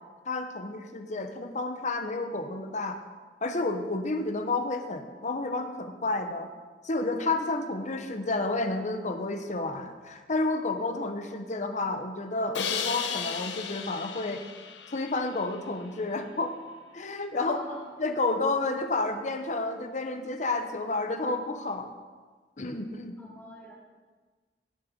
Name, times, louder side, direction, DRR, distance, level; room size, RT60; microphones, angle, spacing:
voice 1, 0.3-3.0 3.4-6.5 6.8-14.4 14.9-16.5 16.9-17.6 18.0-21.9 22.6-23.2, left 2 dB, 45° left, 6 dB, 1.0 m, -30 dB
Crash cymbal, 12.5-15.6, left 6 dB, 85° left, 1.0 m, -35 dB
voice 2, 17.4-17.9 23.2-23.8, left 1 dB, 10° left, -4 dB, 2.1 m, -44 dB
18.5 x 6.6 x 5.3 m, 1.4 s
head